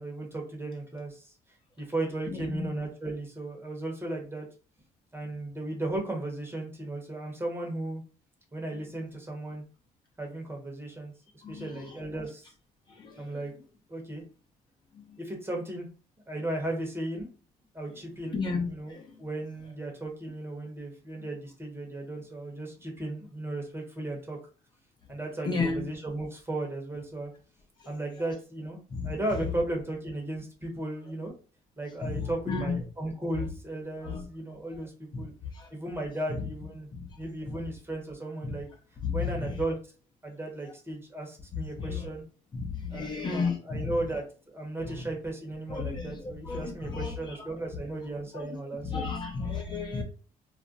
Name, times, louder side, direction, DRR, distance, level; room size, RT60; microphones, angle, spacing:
voice 1, 0.0-1.3 1.8-4.5 5.1-8.0 8.5-9.7 10.2-11.1 11.5-12.5 13.2-13.5 13.9-14.2 15.2-15.9 16.3-17.3 17.7-24.4 25.1-27.3 27.8-28.8 29.0-31.4 31.8-35.3 35.7-36.9 37.2-38.7 39.1-39.8 40.2-42.2 42.9-49.1, right 2 dB, 15° right, 0 dB, 1.0 m, -35 dB
voice 2, 2.3-2.7 11.4-11.6 13.0-13.3 18.3-19.0 25.5-25.9 28.9-29.1 32.0-32.8 34.1-34.2 35.6-35.7 36.9-37.0 39.0-39.5 41.8-42.1 42.5-43.9 45.7-46.1 46.5-47.1 48.3-48.4 48.8-50.0, left 4 dB, 30° left, 0 dB, 0.7 m, -32 dB
2.4 x 2.1 x 3.8 m, 0.37 s
cardioid pair, 115°, 15 cm